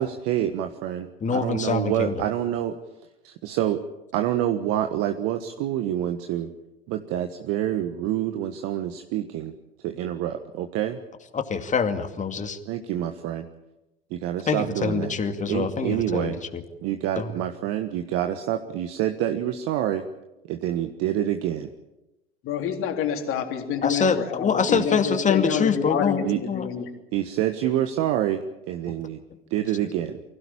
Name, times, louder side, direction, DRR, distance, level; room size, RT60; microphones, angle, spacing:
voice 1, 0.0-2.8 3.4-3.8 4.1-6.5 6.9-9.5 9.8-11.0 12.7-13.5 14.1-15.1 15.5-16.4 16.8-20.0 20.5-21.7 24.7-24.8 26.2-26.4 27.1-29.2 29.5-30.2, right 11 dB, 50° right, 7 dB, 1.5 m, -27 dB
voice 2, 1.2-2.2 11.3-12.6 14.5-16.6 17.2-17.3 23.8-26.7, left 5 dB, 25° left, 7 dB, 2.4 m, -25 dB
voice 3, 22.4-26.9, left 7 dB, 45° left, 4 dB, 3.5 m, -28 dB
24.5 x 16.5 x 8.8 m, 0.96 s
figure-of-eight pair, 80°, 30 cm